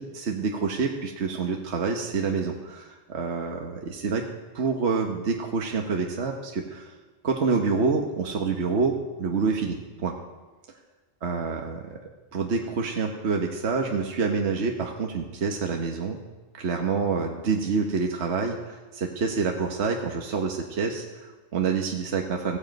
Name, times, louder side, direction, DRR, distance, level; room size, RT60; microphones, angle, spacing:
voice 1, 0.0-4.3 4.5-7.0 7.2-9.8 10.0-10.1 11.2-12.0 12.3-16.2 16.5-22.6, right 4 dB, 60° right, 2 dB, 1.4 m, -27 dB
15.5 x 15.5 x 5.3 m, 1.2 s
omnidirectional pair, 1.3 m